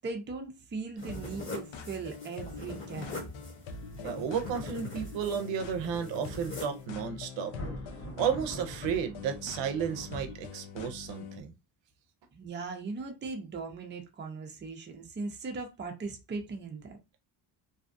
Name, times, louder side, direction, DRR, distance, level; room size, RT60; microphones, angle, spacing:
voice 1, 0.0-3.1 12.3-17.0, right 4 dB, 25° right, 0.5 m, -39 dB
sound 1, 1.0-6.8, left 3 dB, 25° left, 1.0 m, -43 dB
sound 2, 1.1-11.4, left 5 dB, 85° left, 0.6 m, -44 dB
voice 2, 4.0-7.5 8.2-11.5, right 7 dB, 75° right, 0.6 m, -33 dB
Thunder, 7.4-10.7, right 1 dB, 50° left, 1.5 m, -44 dB
2.7 x 2.2 x 2.5 m
cardioid pair, 125°, 45 cm